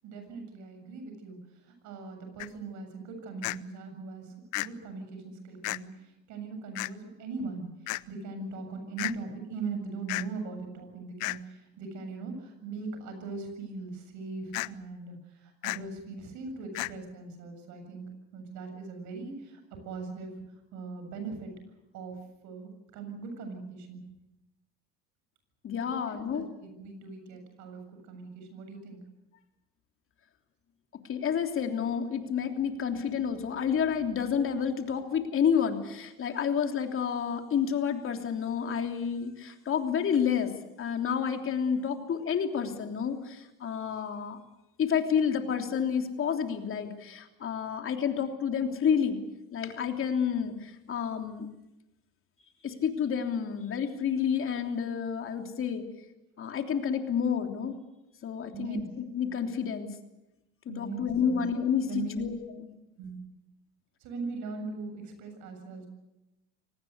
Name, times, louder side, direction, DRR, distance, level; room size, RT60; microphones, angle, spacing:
voice 1, 0.0-20.3 20.7-21.5 21.9-24.0 25.9-29.0 58.5-58.9 60.7-61.4 61.9-62.2 63.0-63.2 64.0-65.9, right 4 dB, 65° right, 6 dB, 7.5 m, -40 dB
sound 1, 2.4-2.5 3.4-3.6 4.5-4.7 5.6-5.8 6.7-6.9 7.9-8.0 9.0-9.1 10.1-10.3 11.2-11.4 14.5-14.7 15.6-15.8 16.7-16.9, left 24 dB, 70° left, 0.8 m, -32 dB
voice 2, 25.6-26.4 31.1-40.5 40.8-44.4 44.8-49.2 49.5-51.5 52.6-55.8 56.4-57.8 58.2-59.9 60.6-62.7, left 7 dB, 40° left, 5 dB, 3.3 m, -29 dB
24.5 x 19.0 x 8.2 m, 0.94 s
supercardioid pair, 95°, 32 cm